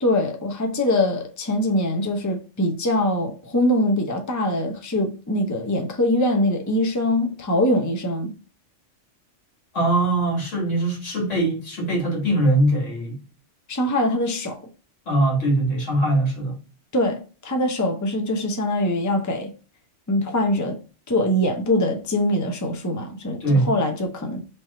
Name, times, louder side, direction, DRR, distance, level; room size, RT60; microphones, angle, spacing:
voice 1, 0.0-8.3 13.7-14.6 16.9-19.5 20.1-20.8 21.1-24.4, left 1 dB, 20° left, 0.6 m, -23 dB
voice 2, 9.7-13.2 15.1-16.6 23.4-23.8, right 1 dB, 85° left, 2.2 m, -21 dB
3.4 x 3.1 x 4.1 m
omnidirectional pair, 1.2 m